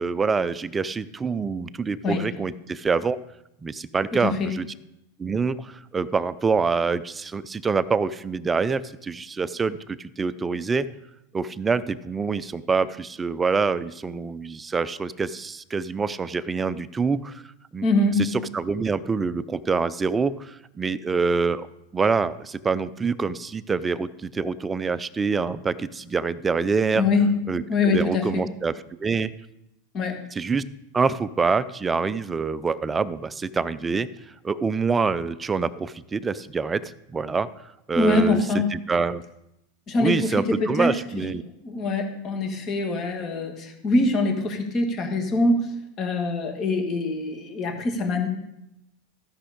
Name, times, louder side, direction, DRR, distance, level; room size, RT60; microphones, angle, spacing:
voice 1, 0.0-3.2 3.6-4.7 5.2-10.9 11.3-17.4 17.7-17.9 18.2-21.7 21.9-27.1 27.5-29.3 30.3-30.6 30.9-34.1 34.4-37.5 37.9-39.2 40.0-41.4, right 4 dB, 10° right, 15 dB, 0.3 m, -26 dB
voice 2, 4.1-4.5 17.8-18.3 26.9-27.3 27.7-28.4 29.9-30.2 37.9-38.7 39.9-40.9 41.6-48.3, left 2 dB, 25° left, 4 dB, 1.8 m, -24 dB
14.0 x 6.1 x 5.1 m, 0.86 s
supercardioid pair, 165°, 0 cm